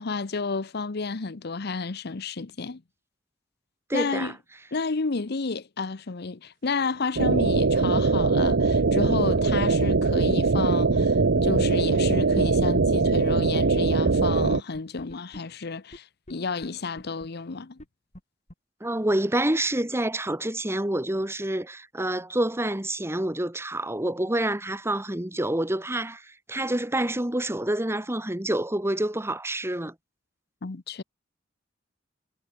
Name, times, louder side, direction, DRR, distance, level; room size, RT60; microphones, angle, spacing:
voice 1, 0.0-2.8 3.9-4.4 4.7-17.8 30.6-31.0, left 4 dB, 60° left, 0.8 m, -31 dB
voice 2, 3.9-4.3 18.8-29.9, right 1 dB, 15° right, 1.8 m, -27 dB
sound 1, 7.2-14.6, right 4 dB, 70° right, 0.8 m, -22 dB
sound 2, 8.4-8.5 8.8-8.9 9.1-9.2 9.5-9.8 10.3-10.4 10.6-10.7 11.0-11.6 12.2-12.3 12.5-12.6 12.9-13.0 13.2-13.5 14.0-14.1 14.4-14.5 14.7-15.4 15.9-16.0 16.3-16.4 16.6-16.7 17.0-17.3 17.8-17.9 18.1-18.2 18.5-18.6, equal, 40° left, 7.7 m, -43 dB
head